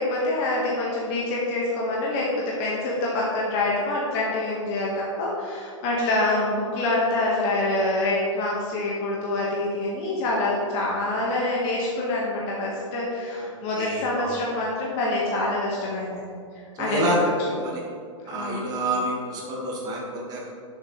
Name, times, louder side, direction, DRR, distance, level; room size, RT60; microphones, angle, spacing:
voice 1, 0.0-16.3 16.8-17.1 17.4-17.5 18.2-18.7, left 2 dB, 35° left, -5 dB, 1.6 m, -26 dB
voice 2, 13.8-14.4 16.8-17.2 17.6-17.8 18.3-20.5, right 1 dB, 25° right, -2 dB, 1.9 m, -28 dB
10.5 x 7.0 x 3.3 m, 2.3 s
hypercardioid pair, 140°, 16 cm